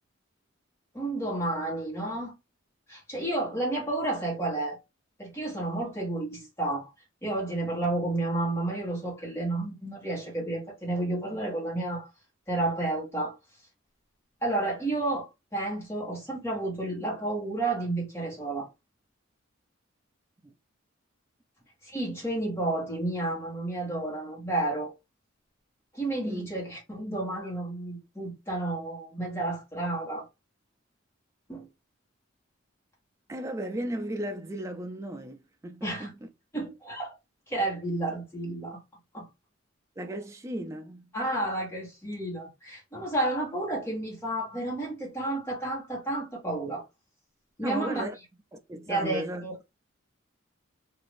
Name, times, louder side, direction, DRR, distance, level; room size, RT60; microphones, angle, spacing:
voice 1, 0.9-2.3 2.9-4.8 5.2-6.9 7.2-12.1 12.5-13.3 14.4-18.7 21.8-24.9 25.9-30.3 31.5-31.6 35.8-36.1 36.5-37.1 37.5-38.8 39.1-39.3 41.1-46.8 47.6-48.1 48.9-49.5, right 2 dB, 15° left, 1.3 m, -31 dB
voice 2, 33.3-36.3 40.0-41.1 47.6-48.2 48.5-49.4, right 1 dB, 15° right, 0.3 m, -35 dB
2.8 x 2.5 x 3.2 m
head